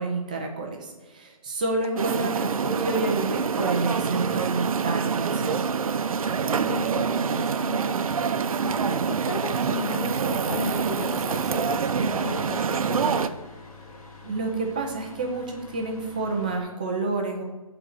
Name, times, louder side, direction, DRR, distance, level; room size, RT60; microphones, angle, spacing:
voice 1, 0.0-5.6 14.2-17.4, right 3 dB, 15° right, 1 dB, 0.4 m, -29 dB
sound 1, 2.0-13.3, right 6 dB, 75° right, 0.6 m, -26 dB
voice 2, 6.5-8.0 8.6-13.4, left 4 dB, 50° left, 12 dB, 0.4 m, -35 dB
sound 2, 10.1-16.6, left 3 dB, 85° left, 2.0 m, -46 dB
8.8 x 3.9 x 6.4 m, 1.3 s
hypercardioid pair, 175°, 18 cm